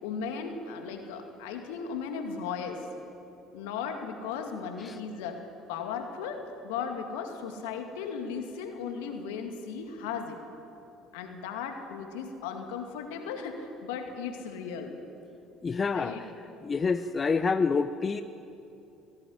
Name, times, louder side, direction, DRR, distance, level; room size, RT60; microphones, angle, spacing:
voice 1, 0.0-2.8 3.5-5.4 5.7-10.4 11.1-15.0 15.9-16.3, left 6 dB, 75° left, 4 dB, 2.3 m, -36 dB
voice 2, 15.6-16.2 16.6-18.2, left 4 dB, 30° left, 11 dB, 0.7 m, -27 dB
18.0 x 16.5 x 9.7 m, 2.8 s
hypercardioid pair, 60°, 0 cm